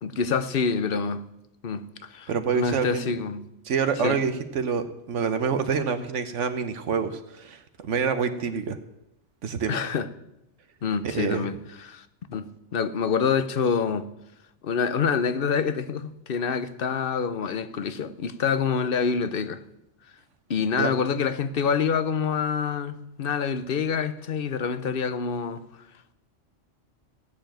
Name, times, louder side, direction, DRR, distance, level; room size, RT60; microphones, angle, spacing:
voice 1, 0.0-1.2 1.6-3.5 4.0-4.2 9.7-10.1 10.8-14.1 14.6-19.6 20.5-25.6, left 6 dB, 50° left, 1.0 m, -27 dB
voice 2, 2.3-3.1 3.6-8.8 9.4-9.8 11.0-11.4 20.8-20.9, right 6 dB, 75° right, 1.2 m, -27 dB
16.0 x 6.9 x 9.0 m
omnidirectional pair, 1.2 m